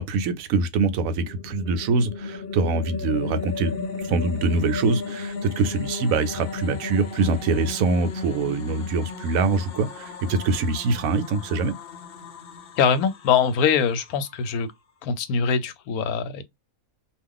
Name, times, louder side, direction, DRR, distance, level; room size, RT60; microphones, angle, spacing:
voice 1, 0.0-3.8 4.0-11.7, right 3 dB, 75° right, 1.0 m, -24 dB
sound 1, 0.9-14.3, left 4 dB, 55° left, 0.7 m, -35 dB
voice 2, 12.8-14.7 15.0-16.4, left 6 dB, 90° left, 1.1 m, -23 dB
2.4 x 2.3 x 3.6 m
omnidirectional pair, 1.5 m